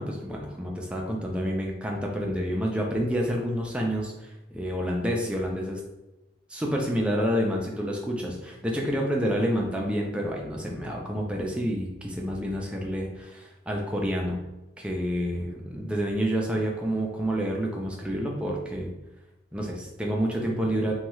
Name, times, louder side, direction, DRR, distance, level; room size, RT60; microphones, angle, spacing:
voice 1, 0.0-5.8 6.5-14.4 14.8-18.9 19.5-20.9, equal, 5° right, -1 dB, 0.4 m, -28 dB
2.7 x 2.2 x 3.0 m, 1.0 s
head